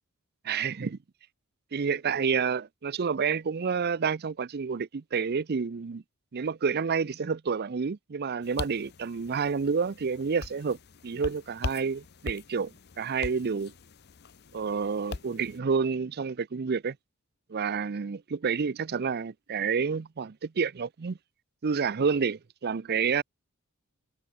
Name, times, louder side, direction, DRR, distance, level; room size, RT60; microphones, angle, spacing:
voice 1, 0.4-1.0 1.7-6.0 6.3-10.8 11.0-13.7 14.5-17.0 17.5-21.2 21.6-23.2, right 5 dB, 45° right, 0.5 m, -29 dB
sound 1, 8.4-15.6, left 4 dB, 50° left, 0.7 m, -42 dB
head